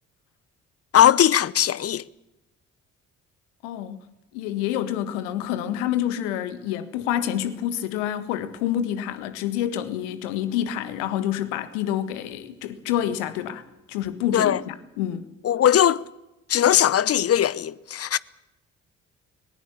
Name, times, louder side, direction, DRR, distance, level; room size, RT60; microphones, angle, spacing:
voice 1, 0.9-2.0 14.3-14.6 15.4-16.0 16.5-18.2, left 10 dB, 40° left, 0.8 m, -19 dB
voice 2, 3.6-4.0 4.3-13.6 13.9-15.3, left 11 dB, 70° left, 1.7 m, -28 dB
24.5 x 19.5 x 7.1 m
figure-of-eight pair, 45°, 38 cm